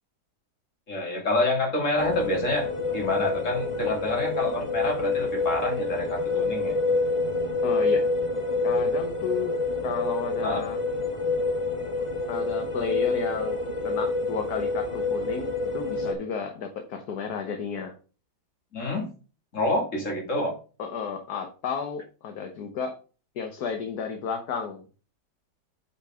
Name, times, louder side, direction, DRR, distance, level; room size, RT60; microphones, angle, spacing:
voice 1, 0.9-6.8 10.4-10.6 18.7-19.1 19.5-20.5, left 2 dB, 45° left, 0 dB, 2.9 m, -27 dB
sound 1, 2.0-16.1, left 3 dB, 25° left, 0.9 m, -27 dB
voice 2, 7.6-8.0 8.6-9.5 9.8-10.8 12.3-17.9 20.8-22.9 23.4-24.8, left 6 dB, 65° left, 4 dB, 1.6 m, -32 dB
8.2 x 5.7 x 3.6 m, 0.36 s
omnidirectional pair, 1.8 m